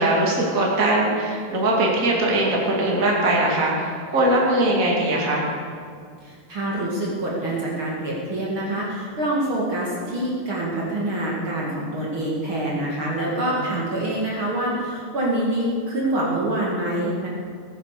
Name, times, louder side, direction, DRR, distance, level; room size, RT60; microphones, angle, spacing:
voice 1, 0.0-5.5 13.5-13.6, right 1 dB, 30° right, -3 dB, 2.9 m, -21 dB
voice 2, 6.2-17.3, right 1 dB, 45° right, -5 dB, 3.1 m, -26 dB
19.0 x 10.0 x 6.8 m, 2.1 s
omnidirectional pair, 3.3 m